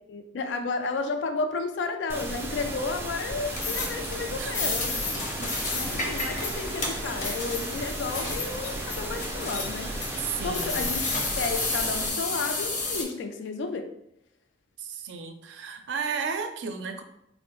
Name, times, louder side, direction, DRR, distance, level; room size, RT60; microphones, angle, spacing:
voice 1, 0.1-5.2 5.5-9.9 10.4-13.9, left 4 dB, 75° left, 7 dB, 0.3 m, -32 dB
sound 1, 2.1-12.1, right 1 dB, 15° right, 0.3 m, -35 dB
sound 2, 3.5-13.0, left 3 dB, 45° left, 0.7 m, -32 dB
voice 2, 4.3-5.0 5.4-6.0 10.2-10.8 14.8-17.0, right 6 dB, 85° right, 6 dB, 0.4 m, -34 dB
3.4 x 2.0 x 3.0 m, 0.79 s
head